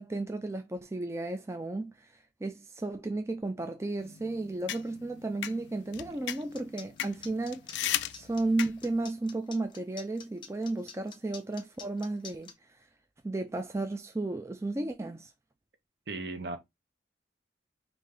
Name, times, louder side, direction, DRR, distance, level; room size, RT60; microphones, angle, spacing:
voice 1, 0.0-2.1 2.4-12.5 13.2-15.3, right 2 dB, 15° right, 0.3 m, -34 dB
sound 1, 4.0-9.0, left 12 dB, 75° left, 0.3 m, -37 dB
sound 2, 6.3-12.5, left 6 dB, 25° left, 0.7 m, -47 dB
voice 2, 16.1-16.6, right 2 dB, 60° right, 0.8 m, -36 dB
5.1 x 2.5 x 3.3 m
head